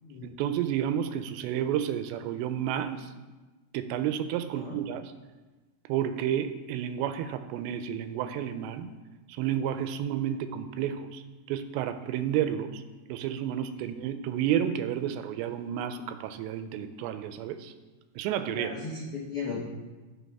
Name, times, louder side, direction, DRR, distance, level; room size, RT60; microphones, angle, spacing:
voice 1, 0.2-3.1 3.7-5.1 5.9-8.9 9.3-11.2 11.5-12.8 13.1-17.7 18.2-18.7, right 10 dB, 85° right, 10 dB, 2.7 m, -31 dB
voice 2, 18.5-19.6, left 4 dB, 80° left, -6 dB, 1.3 m, -36 dB
15.0 x 6.4 x 3.5 m, 1.2 s
omnidirectional pair, 5.1 m